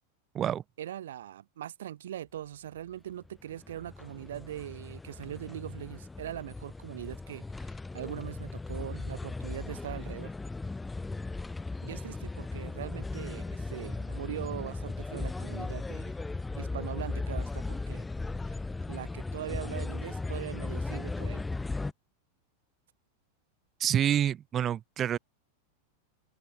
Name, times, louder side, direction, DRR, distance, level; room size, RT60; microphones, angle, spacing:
voice 1, 0.8-10.3 11.8-16.2 16.6-18.1 18.5-18.6 18.9-21.4, right 11 dB, 60° right, 3.0 m, -41 dB
sound 1, 3.2-21.9, left 3 dB, 10° left, 6.6 m, -37 dB
voice 2, 23.8-25.2, right 10 dB, 25° right, 2.7 m, -27 dB
open air
figure-of-eight pair, 90°, 0 cm